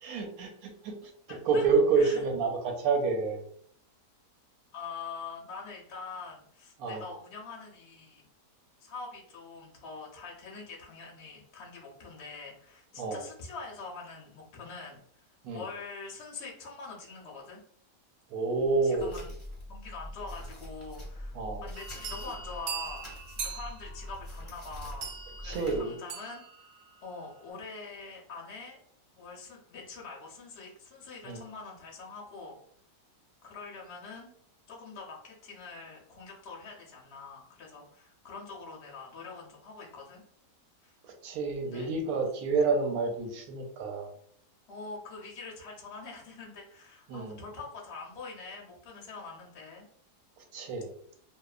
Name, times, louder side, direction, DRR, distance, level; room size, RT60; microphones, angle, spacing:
voice 1, 0.0-1.0 1.3-3.4 6.8-7.0 13.0-13.2 15.4-15.6 18.3-19.1 21.3-21.6 25.4-25.9 31.3-31.4 41.0-44.1 47.1-47.4 50.5-50.9, right 4 dB, 70° right, 3 dB, 0.9 m, -29 dB
voice 2, 1.0-1.7 2.0-2.2 4.7-8.3 8.8-15.3 15.5-17.6 18.8-19.3 19.7-26.4 27.0-28.8 29.2-32.6 33.4-34.3 34.7-40.2 40.8-41.0 41.6-41.9 44.7-49.9, left 4 dB, 55° left, -2 dB, 0.8 m, -44 dB
sound 1, 19.0-25.8, equal, 10° left, 0.9 m, -43 dB
sound 2, 21.7-26.8, right 6 dB, 90° right, 1.2 m, -41 dB
2.8 x 2.0 x 2.3 m, 0.64 s
omnidirectional pair, 1.8 m